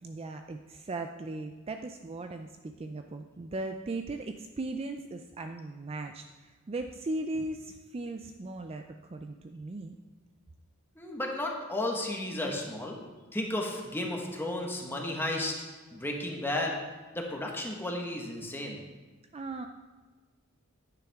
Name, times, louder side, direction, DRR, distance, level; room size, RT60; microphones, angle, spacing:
voice 1, 0.0-10.0 19.3-19.7, right 2 dB, 30° right, 6 dB, 0.4 m, -38 dB
voice 2, 11.0-12.9 13.3-15.5 15.9-16.8 17.1-18.8, left 1 dB, 10° left, 0 dB, 1.4 m, -33 dB
10.5 x 9.2 x 3.6 m, 1.3 s
head